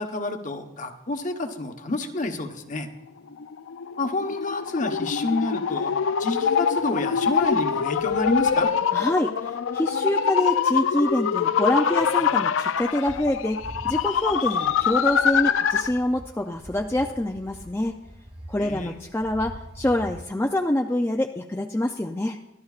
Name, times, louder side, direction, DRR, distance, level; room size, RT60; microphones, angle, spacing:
voice 1, 0.0-2.9 4.0-8.7 18.6-19.0, left 2 dB, 40° left, 5 dB, 1.0 m, -29 dB
sound 1, 3.3-16.0, left 7 dB, 80° left, 0.4 m, -24 dB
sound 2, 7.4-9.0 9.6-9.8 10.5-11.1 11.4-11.5 11.7-11.8 12.0-20.2, equal, 30° right, 1.5 m, -44 dB
voice 2, 8.9-18.0 18.5-22.4, left 1 dB, 10° left, 2 dB, 0.4 m, -26 dB
23.5 x 13.0 x 2.4 m, 0.96 s
head